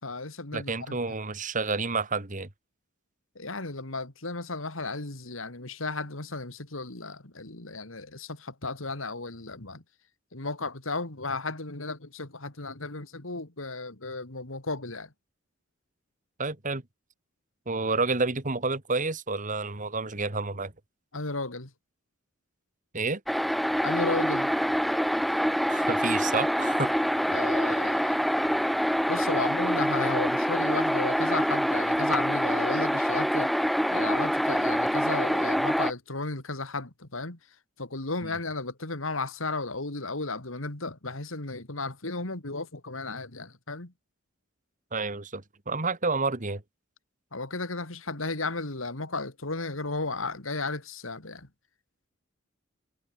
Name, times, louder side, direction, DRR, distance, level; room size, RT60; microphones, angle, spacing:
voice 1, 0.0-1.2 3.3-9.8 10.3-15.1 21.1-21.7 23.8-24.5 27.3-28.1 29.1-33.5 33.9-37.4 37.8-43.9 47.3-51.5, left 3 dB, 80° left, 3.2 m, -34 dB
voice 2, 0.5-2.5 16.4-16.8 17.7-20.7 22.9-23.2 25.7-26.9 38.2-38.3 44.9-46.6, right 3 dB, 40° right, 2.3 m, -29 dB
sound 1, 23.3-35.9, equal, ahead, 1.2 m, -26 dB
head